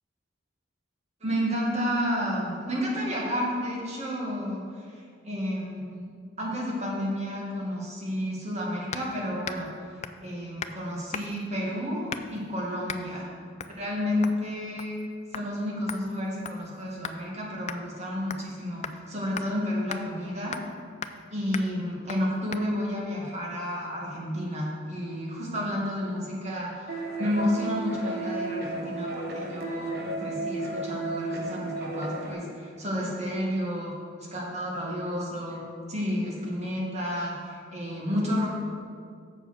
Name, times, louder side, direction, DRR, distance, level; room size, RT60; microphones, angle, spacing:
voice 1, 1.2-5.0 5.2-6.1 6.4-9.7 10.2-13.3 13.8-15.0 15.3-20.6 21.3-33.9 34.3-35.6 35.9-38.5, equal, 35° right, -4 dB, 2.1 m, -31 dB
sound 1, 8.9-9.1 9.4-9.7 10.0-10.3 10.6-10.8 11.1-11.5 12.1-12.4 12.9-13.1 13.6-13.8 14.2-14.4 14.8-15.1 15.3-15.5 15.9-17.2 17.7-17.8 18.3-18.5 18.8-19.0 19.4-19.5 19.9-20.0 20.5-20.7 21.0-21.2 21.5-21.7 22.1-22.2 22.5-22.6, left 6 dB, 35° left, 0.4 m, -37 dB
sound 2, 26.9-32.3, right 2 dB, 55° right, 1.1 m, -33 dB
7.1 x 7.0 x 6.1 m, 2.2 s
head